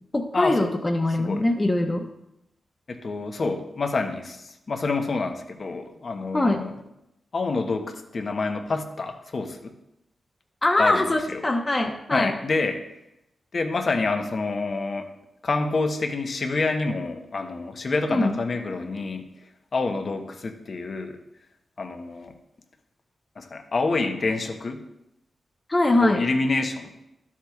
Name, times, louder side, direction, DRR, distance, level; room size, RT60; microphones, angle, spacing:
voice 1, 0.1-2.0 6.3-6.6 10.6-12.3 18.1-18.4 25.7-26.2, left 2 dB, 25° left, 2 dB, 0.9 m, -22 dB
voice 2, 1.1-1.4 2.9-6.7 7.3-9.7 10.8-11.4 12.1-12.8 13.5-15.1 15.4-19.3 19.7-21.2 21.8-22.3 23.4-24.8 26.0-26.9, left 3 dB, 55° left, 5 dB, 1.0 m, -27 dB
12.5 x 7.3 x 2.4 m, 0.86 s
cardioid pair, 55°, 0 cm